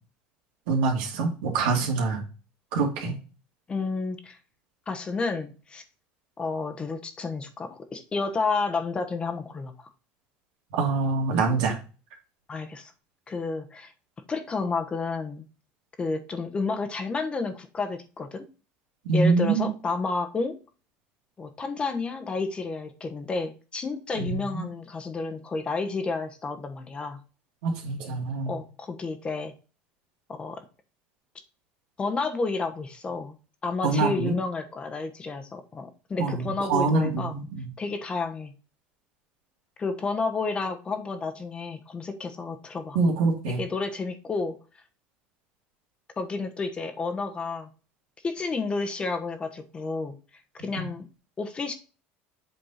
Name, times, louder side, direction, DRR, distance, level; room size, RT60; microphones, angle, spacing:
voice 1, 0.7-2.2 2.7-3.1 10.7-11.7 19.0-19.7 24.2-24.7 27.6-28.6 33.8-34.3 36.2-37.7 42.9-43.6 50.8-50.9, right 4 dB, 85° right, 0 dB, 2.5 m, -25 dB
voice 2, 3.7-4.4 4.9-5.8 6.4-9.9 12.5-12.9 13.3-13.9 14.3-15.4 16.0-18.5 19.1-20.6 21.4-27.2 28.5-29.5 30.3-30.6 32.0-33.4 33.6-37.4 37.8-38.5 39.8-43.0 43.6-44.6 46.2-47.7 48.2-50.2 50.6-51.1 51.4-51.7, left 4 dB, 20° left, 8 dB, 1.1 m, -31 dB
8.0 x 4.3 x 4.3 m, 0.35 s
cardioid pair, 140°, 5 cm